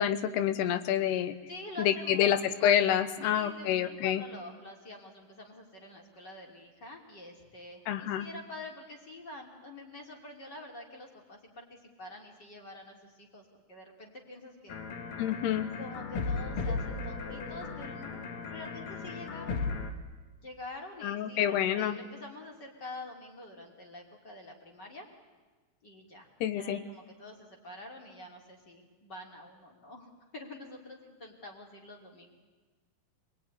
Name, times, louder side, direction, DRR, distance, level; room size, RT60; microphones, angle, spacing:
voice 1, 0.0-1.3 1.8-4.2 7.9-8.3 15.2-15.7 21.0-22.0 26.4-26.8, left 10 dB, 80° left, 12 dB, 3.1 m, -28 dB
voice 2, 1.5-2.5 3.2-14.8 15.8-19.6 20.4-25.1 25.8-32.3, left 2 dB, 30° left, 0 dB, 3.1 m, -47 dB
sound 1, 14.7-19.9, left 4 dB, 65° left, 3.2 m, -36 dB
27.5 x 20.0 x 9.8 m, 1.3 s
omnidirectional pair, 4.7 m